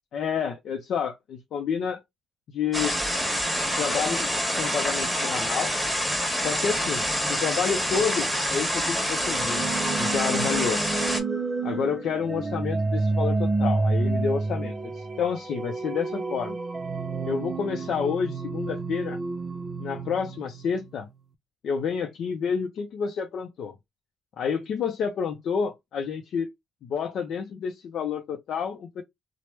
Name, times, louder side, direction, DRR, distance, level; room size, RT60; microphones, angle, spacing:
voice 1, 0.1-2.0 2.5-3.0 3.8-5.7 6.4-9.6 10.0-10.8 11.6-16.6 17.2-19.2 19.8-21.1 21.6-23.7 24.4-26.5 26.8-29.0, left 6 dB, 70° left, 0.4 m, -29 dB
sound 1, 2.7-11.2, equal, ahead, 1.2 m, -27 dB
sound 2, 9.1-21.0, right 3 dB, 35° right, 0.5 m, -29 dB
3.1 x 2.0 x 3.1 m
cardioid pair, 90°, 0 cm